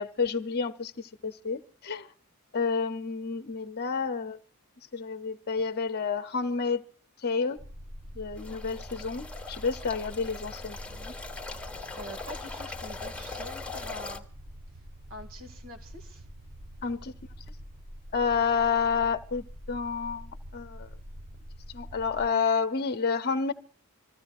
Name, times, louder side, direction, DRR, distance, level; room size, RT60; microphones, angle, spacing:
voice 1, 0.0-2.1 2.5-4.4 4.9-6.8 7.2-7.6 8.2-11.1 16.8-17.1 18.1-20.9 21.7-23.5, left 5 dB, 45° left, 0.8 m, -30 dB
sound 1, 7.6-22.3, equal, 30° right, 1.1 m, -45 dB
sound 2, 8.4-14.2, left 3 dB, 5° left, 1.5 m, -41 dB
voice 2, 11.9-14.2 15.1-16.3, left 1 dB, 65° right, 2.3 m, -44 dB
26.5 x 15.0 x 2.5 m
head